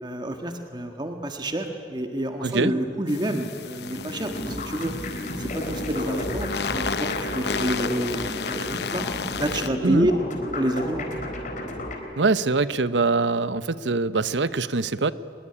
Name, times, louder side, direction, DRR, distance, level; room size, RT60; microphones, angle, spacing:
voice 1, 0.0-4.9 5.4-9.0 9.4-10.1 10.5-11.1, right 1 dB, 25° right, 5 dB, 1.6 m, -28 dB
voice 2, 2.4-2.7 9.8-10.1 12.2-15.1, right 3 dB, 85° right, 15 dB, 0.9 m, -23 dB
sound 1, 3.1-9.7, left 5 dB, 65° left, 0.8 m, -33 dB
sound 2, 3.9-9.7, right 1 dB, 45° right, 6.8 m, -48 dB
sound 3, 4.3-12.0, equal, 45° left, 4.2 m, -32 dB
24.5 x 21.5 x 9.9 m, 2.5 s
head